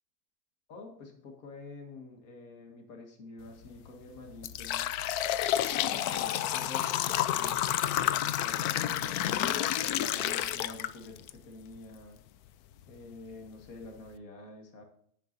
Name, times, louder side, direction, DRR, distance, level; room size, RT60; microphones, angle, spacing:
voice 1, 0.7-4.9 5.7-9.3 9.8-12.2 12.9-14.8, left 2 dB, 65° left, 3 dB, 2.2 m, -48 dB
sound 1, 3.5-3.7 4.2-11.3 11.8-11.9 12.7-12.8 13.3-13.4 13.9-14.1, left 12 dB, 80° left, 1.1 m, -30 dB
10.5 x 10.5 x 2.6 m, 0.66 s
omnidirectional pair, 1.6 m